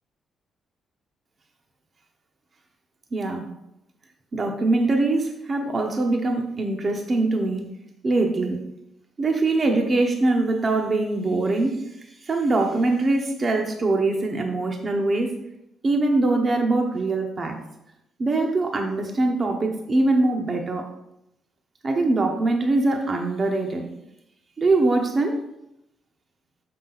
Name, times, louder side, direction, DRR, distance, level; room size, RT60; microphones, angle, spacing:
voice 1, 3.1-3.5 4.3-7.7 8.0-8.6 9.2-15.3 15.8-17.6 18.2-20.8 21.8-23.9 24.6-25.4, right 2 dB, 40° right, 2 dB, 0.9 m, -23 dB
6.3 x 5.8 x 3.9 m, 0.84 s
cardioid pair, 90°, 0 cm